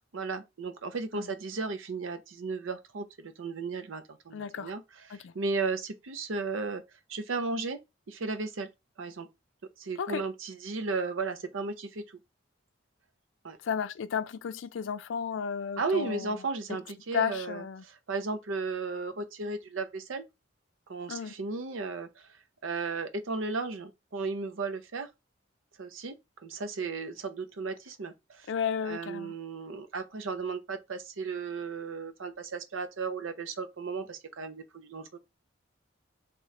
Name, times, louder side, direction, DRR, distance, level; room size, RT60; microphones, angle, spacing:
voice 1, 0.1-6.8 7.1-7.8 8.1-8.7 9.0-9.3 9.8-12.2 13.4-13.6 15.8-20.2 20.9-22.3 22.6-25.1 25.8-26.2 26.4-28.5 28.8-35.2, right 4 dB, 85° right, 0.6 m, -35 dB
voice 2, 4.3-4.7 5.1-5.3 10.0-10.2 13.6-16.4 17.1-17.8 21.1-21.4 28.5-29.3, left 7 dB, 75° left, 0.4 m, -33 dB
3.2 x 3.0 x 3.6 m
head